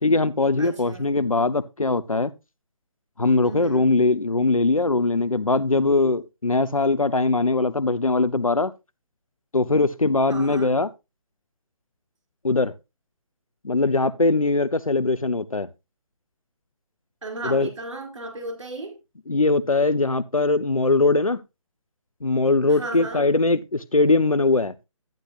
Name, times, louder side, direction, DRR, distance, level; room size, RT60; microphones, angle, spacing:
voice 1, 0.0-2.3 3.2-8.7 9.5-10.9 12.4-12.7 13.6-15.7 17.4-17.7 19.3-21.4 22.2-24.7, left 3 dB, 85° left, 0.8 m, -21 dB
voice 2, 0.6-1.2 3.4-3.9 10.3-10.7 17.2-19.0 22.7-23.2, right 2 dB, 60° right, 4.6 m, -35 dB
13.5 x 9.7 x 2.5 m
figure-of-eight pair, 145°, 17 cm